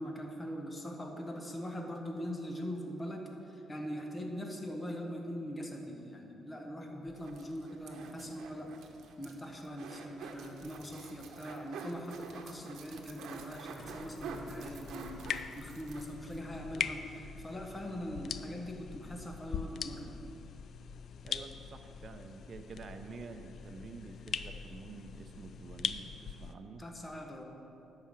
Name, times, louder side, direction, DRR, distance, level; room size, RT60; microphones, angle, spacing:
voice 1, 0.0-8.8 9.2-20.2 26.8-27.4, equal, 20° left, 2 dB, 1.3 m, -42 dB
sound 1, 7.1-16.4 16.7-16.8 17.1-17.2, right 5 dB, 75° right, 1.0 m, -48 dB
sound 2, 13.8-26.5, left 7 dB, 60° left, 0.4 m, -42 dB
voice 2, 21.2-26.8, right 4 dB, 45° right, 6 dB, 0.7 m, -48 dB
11.0 x 4.9 x 7.4 m, 2.9 s
cardioid pair, 90°, 0 cm